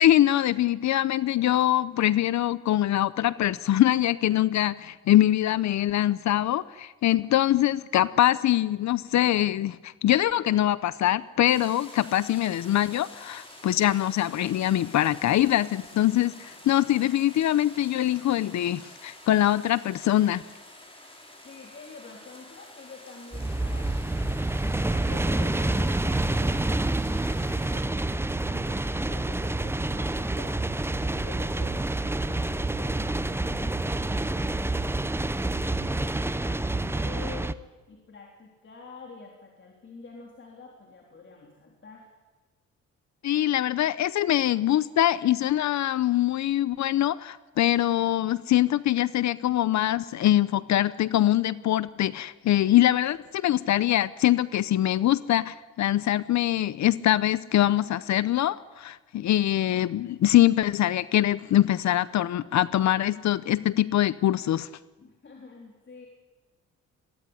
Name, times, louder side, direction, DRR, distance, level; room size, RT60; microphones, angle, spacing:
voice 1, 0.0-20.4 43.2-64.7, left 13 dB, 70° left, 18 dB, 0.7 m, -23 dB
sound 1, 11.4-27.8, left 1 dB, 20° left, 5.8 m, -48 dB
voice 2, 21.4-24.6 24.9-26.7 27.2-28.1 28.4-34.7 35.5-36.1 36.4-42.1 65.0-66.1, left 4 dB, 40° left, 0 dB, 3.7 m, -47 dB
sound 2, 23.3-37.5, right 2 dB, 10° right, 0.8 m, -28 dB
22.0 x 16.0 x 9.8 m, 1.3 s
cardioid pair, 105°, 29 cm